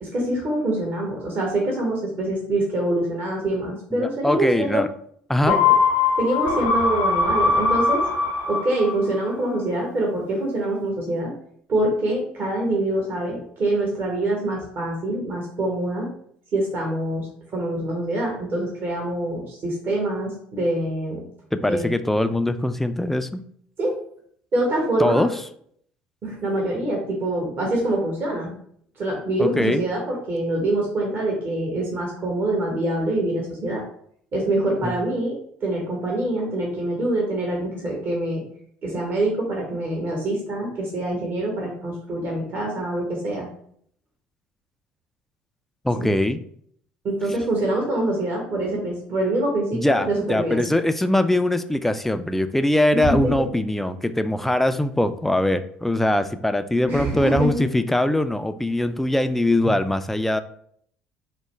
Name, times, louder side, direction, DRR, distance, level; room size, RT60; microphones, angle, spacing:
voice 1, 0.0-4.8 5.5-5.6 6.2-8.0 8.5-11.3 11.7-16.1 16.5-21.2 21.7-21.9 23.8-23.9 24.5-25.2 26.2-28.5 29.0-33.8 34.3-35.4 35.6-38.4 38.8-43.5 45.9-46.1 47.0-50.6 52.9-53.4 56.9-57.6, right 1 dB, 50° right, -1 dB, 1.2 m, -25 dB
voice 2, 3.9-4.9 5.3-5.6 21.5-23.4 25.0-25.3 29.4-29.9 34.8-34.9 45.8-46.4 49.7-60.4, left 1 dB, 5° left, 10 dB, 0.3 m, -22 dB
sound 1, 5.5-9.2 9.5-9.6, left 4 dB, 80° left, 0.7 m, -21 dB
4.6 x 2.2 x 3.2 m, 0.64 s
hypercardioid pair, 65°, 5 cm